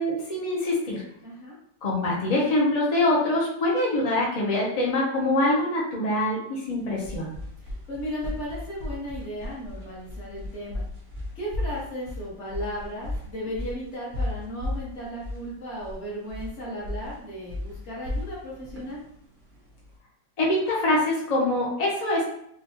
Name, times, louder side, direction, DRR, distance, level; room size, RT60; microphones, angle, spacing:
voice 1, 0.0-1.0 1.8-7.3 20.4-22.2, left 1 dB, 85° left, -4 dB, 0.3 m, -24 dB
voice 2, 1.2-1.6 7.6-10.8 11.3-19.0, equal, 45° left, -5 dB, 1.3 m, -35 dB
sound 1, 6.7-19.9, left 1 dB, 75° right, 0.4 m, -35 dB
4.1 x 2.3 x 2.7 m, 0.71 s
omnidirectional pair, 2.0 m